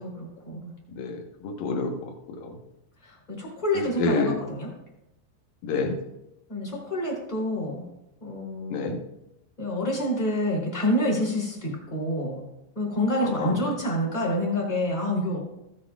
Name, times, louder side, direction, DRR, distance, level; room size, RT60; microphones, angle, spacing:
voice 1, 0.0-0.7 3.0-4.7 6.5-7.9 8.2-8.8 9.6-12.4 12.7-15.4, left 1 dB, 10° left, -3 dB, 2.1 m, -28 dB
voice 2, 0.9-2.6 3.7-4.4 5.6-6.0 8.7-9.0 13.2-13.7, left 3 dB, 65° left, 2 dB, 2.5 m, -29 dB
16.5 x 8.0 x 2.4 m, 0.89 s
omnidirectional pair, 5.2 m